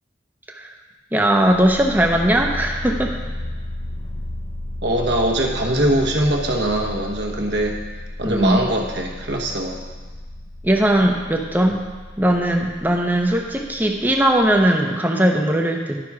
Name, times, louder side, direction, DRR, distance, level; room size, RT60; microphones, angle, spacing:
voice 1, 1.1-3.1 8.2-8.6 10.6-11.8 12.2-16.0, right 1 dB, 10° right, 2 dB, 0.7 m, -19 dB
sound 1, 1.3-14.7, left 1 dB, 35° left, 0.6 m, -34 dB
voice 2, 4.8-7.8 8.2-9.8, right 1 dB, 65° right, 0 dB, 1.2 m, -22 dB
11.5 x 6.0 x 4.8 m, 1.4 s
head